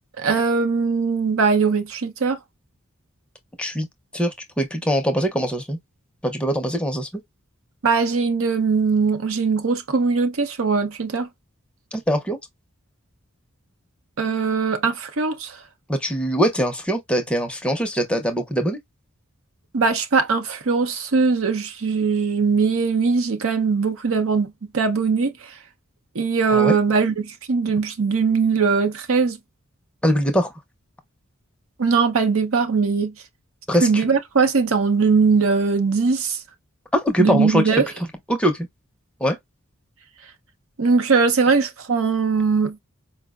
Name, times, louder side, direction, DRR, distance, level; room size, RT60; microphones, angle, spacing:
voice 1, 0.2-2.4 7.8-11.3 14.2-15.6 19.7-25.5 26.1-29.4 31.8-33.1 33.8-36.4 37.2-37.9 40.8-42.8, right 4 dB, 75° right, 0.7 m, -20 dB
voice 2, 4.1-5.8 6.2-7.1 11.9-12.4 15.9-18.8 26.5-26.7 30.0-30.5 33.7-33.9 36.9-37.6 38.3-38.6 39.2-39.4, equal, 5° left, 0.5 m, -22 dB
4.5 x 2.0 x 2.3 m
head